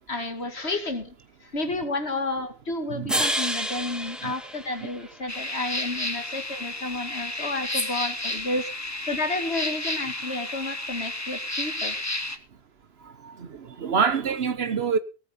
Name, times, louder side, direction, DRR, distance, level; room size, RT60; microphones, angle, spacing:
voice 1, 0.1-1.1 1.4-8.7 9.1-12.0, left 2 dB, 80° left, 2.7 m, -31 dB
voice 2, 2.9-3.3 4.2-4.3 13.0-15.0, right 6 dB, 70° right, 1.2 m, -27 dB
sound 1, 3.1-5.4, equal, ahead, 1.6 m, -29 dB
sound 2, 5.3-12.4, left 1 dB, 15° left, 1.4 m, -31 dB
17.5 x 9.2 x 5.4 m
omnidirectional pair, 1.1 m